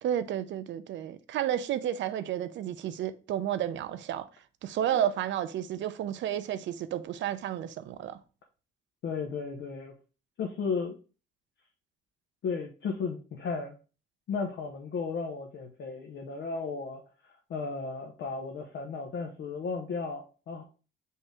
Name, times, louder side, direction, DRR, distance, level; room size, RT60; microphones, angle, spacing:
voice 1, 0.0-4.3 4.6-8.2, right 10 dB, 70° right, 0.5 m, -31 dB
voice 2, 9.0-9.9 10.4-11.0 12.4-13.7 14.3-17.0 17.5-20.6, left 5 dB, 65° left, 0.8 m, -34 dB
5.5 x 2.7 x 3.4 m
cardioid pair, 90°, 20 cm